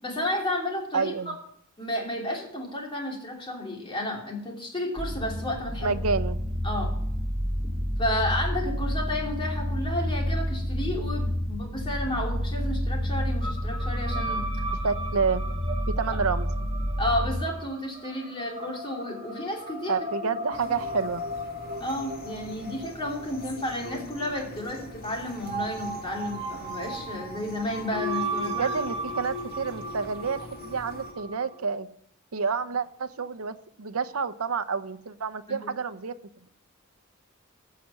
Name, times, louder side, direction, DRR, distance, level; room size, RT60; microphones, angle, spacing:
voice 1, 0.0-1.3 1.8-6.0 6.6-6.9 8.0-14.5 17.0-20.1 20.6-20.8 21.8-28.7 35.5-35.7, left 1 dB, 25° left, 0 dB, 3.0 m, -32 dB
voice 2, 0.9-1.3 5.8-6.4 14.8-15.4 15.9-16.5 19.9-21.2 28.4-31.9 32.3-36.1, right 5 dB, 70° right, 12 dB, 0.8 m, -29 dB
sound 1, 5.0-17.4, equal, 15° right, 1.7 m, -29 dB
sound 2, 13.4-31.5, right 1 dB, 30° right, 2.0 m, -36 dB
sound 3, 20.5-31.1, left 1 dB, 45° left, 1.9 m, -45 dB
15.0 x 6.0 x 7.7 m, 0.70 s
head